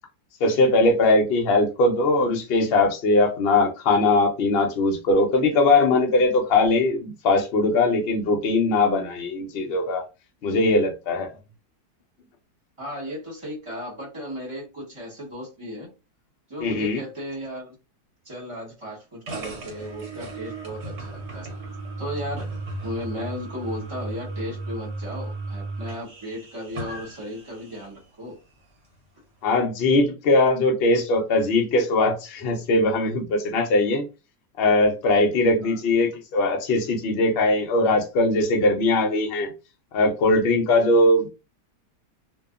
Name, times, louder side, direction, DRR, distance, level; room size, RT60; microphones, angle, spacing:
voice 1, 0.4-10.1 10.4-11.3 16.6-17.0 29.4-34.1 34.6-39.5 39.9-41.3, left 2 dB, 75° left, 0.5 m, -20 dB
voice 2, 1.4-1.7 12.8-15.9 16.5-17.8 18.2-21.5 22.0-22.5 22.8-28.4 35.6-35.8, equal, 20° right, 0.9 m, -35 dB
Outdoor passageway electronic door-opener, 19.3-28.0, right 2 dB, 55° right, 0.9 m, -35 dB
2.7 x 2.2 x 2.4 m
omnidirectional pair, 1.8 m